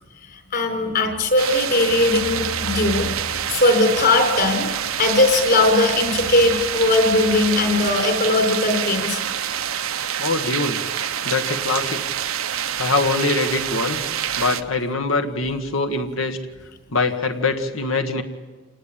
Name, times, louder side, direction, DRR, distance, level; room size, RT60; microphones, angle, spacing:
voice 1, 0.5-4.7 5.0-9.2, left 2 dB, 50° left, 5 dB, 4.4 m, -19 dB
sound 1, 1.4-14.6, right 9 dB, 85° right, 1.0 m, -26 dB
voice 2, 10.2-10.8 11.2-12.2 12.8-14.1 14.4-16.4 16.9-18.2, left 3 dB, 75° left, 6 dB, 1.7 m, -23 dB
28.0 x 19.0 x 8.9 m, 1.4 s
head